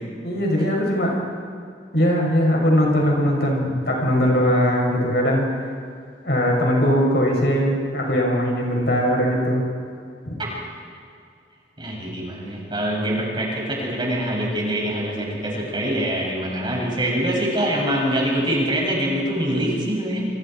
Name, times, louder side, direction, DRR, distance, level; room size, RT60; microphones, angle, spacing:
voice 1, 0.2-1.2 1.9-5.5 6.2-9.7 10.3-10.4, equal, 65° left, -1 dB, 7.0 m, -20 dB
voice 2, 11.8-20.3, right 1 dB, 25° right, -3 dB, 7.2 m, -24 dB
28.0 x 27.0 x 4.7 m, 2.4 s
head